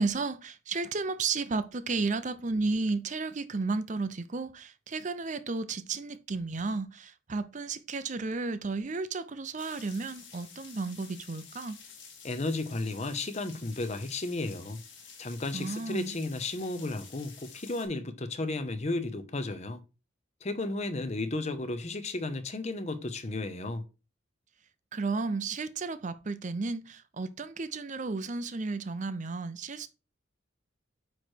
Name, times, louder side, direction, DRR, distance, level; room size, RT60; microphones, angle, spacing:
voice 1, 0.0-11.8 15.5-16.1 24.9-29.9, right 3 dB, 40° right, 0.6 m, -33 dB
sound 1, 9.6-17.9, left 6 dB, 65° left, 2.3 m, -50 dB
voice 2, 12.2-14.8 15.2-19.8 20.4-23.8, left 2 dB, 35° left, 0.7 m, -33 dB
9.2 x 3.2 x 4.5 m
head